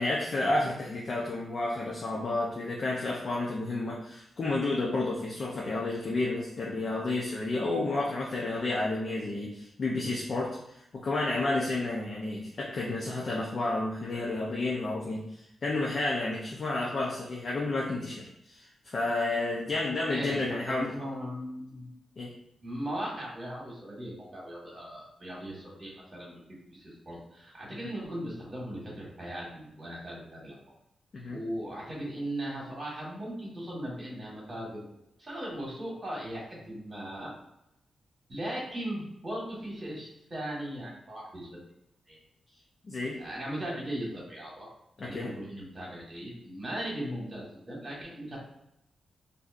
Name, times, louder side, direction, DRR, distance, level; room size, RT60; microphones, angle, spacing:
voice 1, 0.0-15.3 15.6-20.9 22.2-22.3 31.1-31.4 42.8-43.2 45.0-45.4, left 2 dB, 45° left, -4 dB, 0.5 m, -31 dB
voice 2, 20.1-21.9 22.6-26.4 26.7-30.5 31.3-34.8 35.2-37.3 38.3-41.6 42.1-42.2 43.2-44.7 45.0-48.4, right 1 dB, 30° right, -4 dB, 1.3 m, -38 dB
4.0 x 2.6 x 2.4 m, 0.82 s
wide cardioid pair, 165°, 0 cm